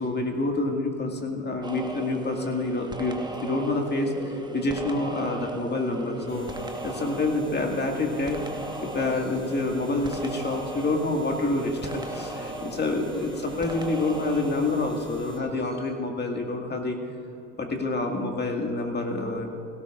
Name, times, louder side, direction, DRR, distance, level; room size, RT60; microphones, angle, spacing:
voice 1, 0.0-6.5 6.8-8.4 8.8-17.0 17.6-19.5, left 2 dB, 25° left, 2 dB, 2.0 m, -27 dB
sound 1, 1.6-14.8, right 2 dB, 10° right, 1.2 m, -36 dB
sound 2, 6.3-15.4, left 3 dB, 65° left, 2.9 m, -47 dB
17.5 x 16.5 x 2.5 m, 2.9 s
hypercardioid pair, 75°, 44 cm